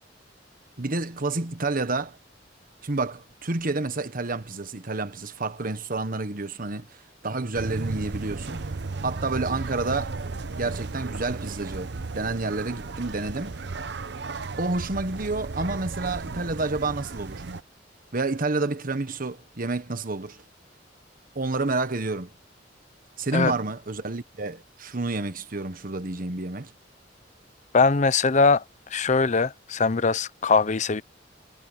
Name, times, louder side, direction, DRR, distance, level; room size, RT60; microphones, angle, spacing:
voice 1, 0.8-2.2 2.8-6.9 7.2-8.7 9.0-10.2 10.6-13.6 14.6-17.4 18.1-20.4 21.3-22.3 23.2-26.7, right 3 dB, 50° right, 1.3 m, -29 dB
sound 1, 7.5-17.6, right 3 dB, 65° right, 0.8 m, -35 dB
voice 2, 27.7-28.6 28.9-31.0, left 4 dB, 40° left, 0.6 m, -21 dB
head